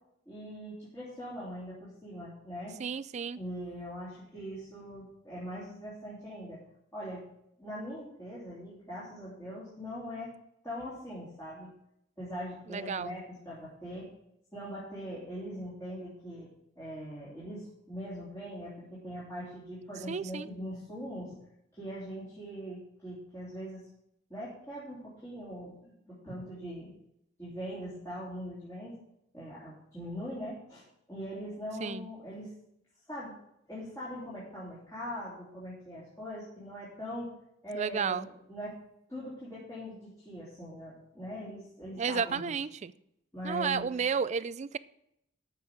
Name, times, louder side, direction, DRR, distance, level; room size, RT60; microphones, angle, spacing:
voice 1, 0.2-2.7 3.4-6.6 6.9-7.2 7.6-10.3 10.6-11.7 12.2-14.1 14.5-16.5 16.7-21.3 21.7-23.9 24.3-26.9 27.4-28.9 29.3-32.5 33.1-33.3 33.7-37.3 37.6-38.8 39.1-42.5 43.3-43.9, equal, 15° left, -10 dB, 3.2 m, -41 dB
voice 2, 2.8-3.4 12.7-13.1 20.1-20.5 31.8-32.1 37.7-38.3 42.0-42.9 43.4-44.8, right 6 dB, 35° right, 17 dB, 0.3 m, -32 dB
13.5 x 6.2 x 4.9 m, 0.77 s
head